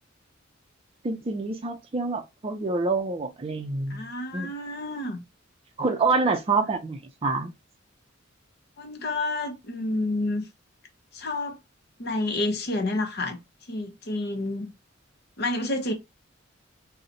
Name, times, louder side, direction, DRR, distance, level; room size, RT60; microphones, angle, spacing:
voice 1, 1.0-4.0 4.3-4.5 5.8-7.5, right 3 dB, 30° right, 0.4 m, -27 dB
voice 2, 3.9-5.2 8.8-10.4 11.1-11.6 12.0-13.4 13.7-14.7 15.4-15.9, left 2 dB, 55° left, 0.8 m, -29 dB
3.9 x 2.1 x 2.8 m
head